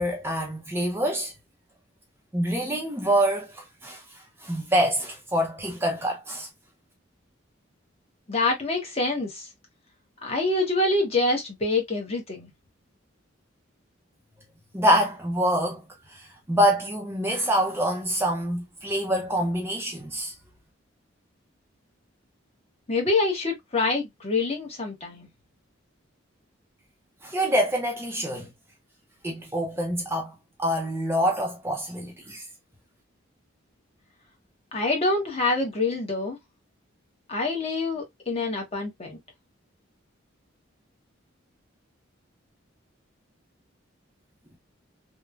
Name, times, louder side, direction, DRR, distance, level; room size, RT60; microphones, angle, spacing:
voice 1, 0.0-1.3 2.3-4.0 4.4-6.5 14.7-15.8 16.1-20.3 27.2-28.5 29.2-30.3 30.6-32.4, equal, 10° right, 0.5 m, -26 dB
voice 2, 8.3-9.5 10.2-12.5 22.9-25.3 34.7-36.4 37.3-39.2, left 3 dB, 30° left, 0.9 m, -26 dB
3.0 x 2.1 x 2.3 m
head